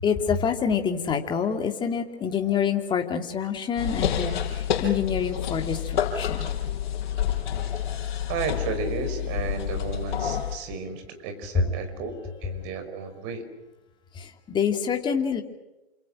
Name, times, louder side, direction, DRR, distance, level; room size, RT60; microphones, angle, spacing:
voice 1, 0.0-6.5 10.8-10.9 14.1-15.4, left 7 dB, 15° left, 4 dB, 2.8 m, -27 dB
sound 1, 3.8-10.6, left 9 dB, 50° left, 6.0 m, -28 dB
voice 2, 6.9-7.9 8.3-13.4, right 5 dB, 35° right, 9 dB, 5.5 m, -34 dB
29.5 x 27.0 x 6.4 m, 1.0 s
hypercardioid pair, 130°, 32 cm